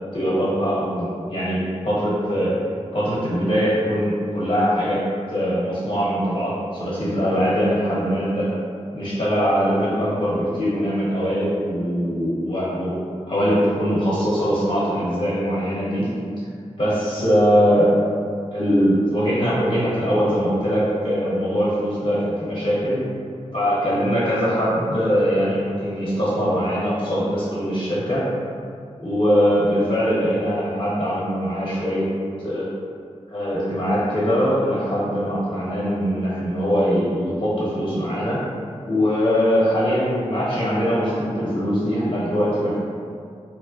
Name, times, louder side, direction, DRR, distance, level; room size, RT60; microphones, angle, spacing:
voice 1, 0.1-2.6 2.9-8.5 8.9-16.1 16.8-18.0 18.5-23.0 23.5-28.3 29.0-32.1 32.4-32.6 33.3-38.4 38.8-42.8, equal, 45° left, -8 dB, 1.0 m, -22 dB
3.0 x 2.0 x 2.5 m, 2.3 s
wide cardioid pair, 65°, 12 cm